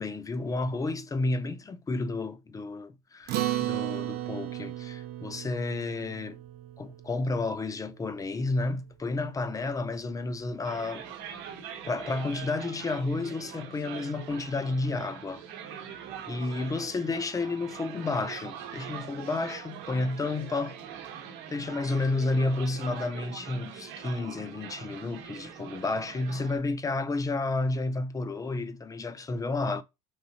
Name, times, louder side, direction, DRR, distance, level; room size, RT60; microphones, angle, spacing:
voice 1, 0.0-3.3 3.6-6.4 6.8-11.0 11.8-15.4 16.3-20.8 21.5-29.8, left 3 dB, 15° left, 0.4 m, -31 dB
Acoustic guitar, 3.3-8.0, right 14 dB, 55° right, 0.6 m, -34 dB
sound 1, 10.6-26.6, right 8 dB, 70° right, 0.9 m, -43 dB
3.1 x 2.6 x 2.7 m
supercardioid pair, 95°, 20 cm